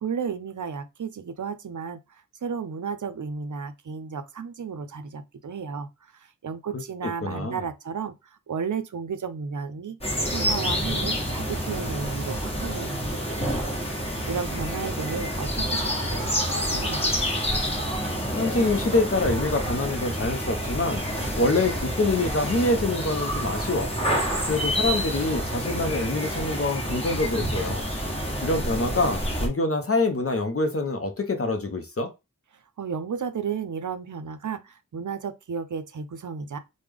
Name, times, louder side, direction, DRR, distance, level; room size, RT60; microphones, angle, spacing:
voice 1, 0.0-2.0 2.4-5.9 6.4-8.1 8.5-10.0 10.3-13.7 14.3-17.4 32.8-36.6, right 6 dB, 60° right, 0.5 m, -33 dB
voice 2, 6.7-7.6 18.4-21.0 21.4-23.9 24.4-27.9 28.4-32.1, left 2 dB, 40° left, 0.6 m, -26 dB
sound 1, 10.0-29.5, equal, 15° left, 1.2 m, -28 dB
3.3 x 2.1 x 3.4 m
wide cardioid pair, 50°, 34 cm